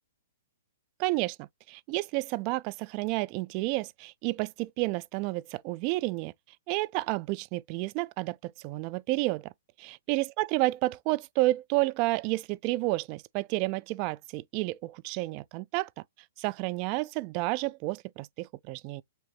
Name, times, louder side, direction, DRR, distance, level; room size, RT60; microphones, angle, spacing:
voice 1, 1.0-6.3 6.7-9.5 9.8-16.0 16.4-19.0, right 20 dB, 35° right, 0.3 m, -30 dB
5.8 x 3.1 x 2.9 m
hypercardioid pair, 150°, 0 cm